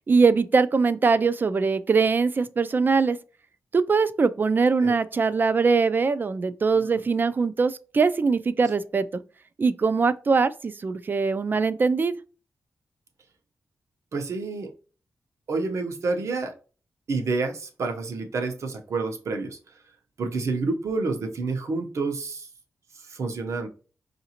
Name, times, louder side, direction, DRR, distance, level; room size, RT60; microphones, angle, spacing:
voice 1, 0.1-3.2 3.7-9.2 9.6-12.2, right 4 dB, 40° right, 0.3 m, -22 dB
voice 2, 14.1-14.7 15.5-16.5 17.1-19.6 20.2-22.5 23.1-23.7, right 3 dB, 70° right, 0.8 m, -28 dB
4.8 x 2.6 x 2.8 m
wide cardioid pair, 100°, 5 cm